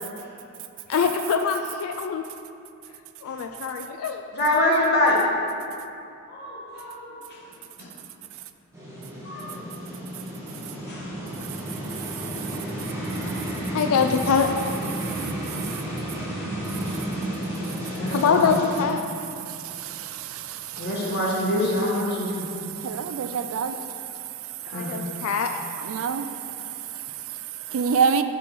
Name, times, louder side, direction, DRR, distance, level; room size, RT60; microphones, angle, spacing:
voice 1, 0.9-2.2 3.2-4.2 4.7-4.8 13.7-14.5 18.1-19.0 24.7-25.5, left 6 dB, 70° left, 5 dB, 0.3 m, -24 dB
voice 2, 4.3-5.2 6.3-7.4 7.8-7.9 9.2-9.6 10.9-11.1 17.9-18.6 20.8-22.5 24.7-24.9, left 1 dB, 50° left, -4 dB, 1.5 m, -25 dB
sound 1, 8.7-18.8, right 1 dB, 15° right, 1.7 m, -32 dB
voice 3, 12.0-12.6 15.1-15.8 19.5-21.2 22.5-23.9 24.7-25.3 25.8-28.2, right 6 dB, 65° right, 9 dB, 0.4 m, -29 dB
6.1 x 4.6 x 6.0 m, 2.7 s
head